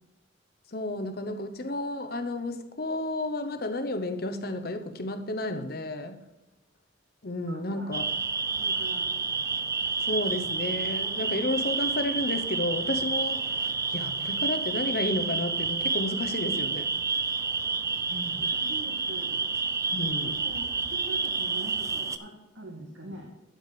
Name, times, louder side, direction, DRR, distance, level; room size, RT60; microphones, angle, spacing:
voice 1, 0.7-6.2 7.2-8.1 10.0-16.9 19.9-20.4, left 1 dB, 50° left, 0.9 m, -32 dB
voice 2, 7.5-7.9 8.6-9.1 18.1-19.5 20.2-23.3, right 1 dB, 85° right, 1.8 m, -43 dB
sound 1, 7.9-22.2, right 4 dB, 15° right, 0.4 m, -29 dB
12.0 x 5.0 x 6.8 m
head